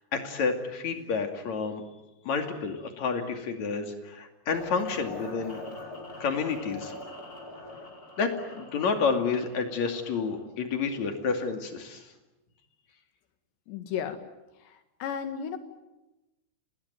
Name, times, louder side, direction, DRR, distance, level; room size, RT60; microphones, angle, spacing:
voice 1, 0.1-1.8 2.2-5.6 6.2-6.9 8.2-12.0, left 5 dB, 45° left, 5 dB, 3.3 m, -29 dB
sound 1, 4.5-10.5, left 1 dB, 20° left, 5.3 m, -43 dB
voice 2, 13.7-14.2 14.7-15.6, left 8 dB, 75° left, 8 dB, 4.2 m, -34 dB
29.5 x 20.0 x 9.3 m, 1.0 s
omnidirectional pair, 5.1 m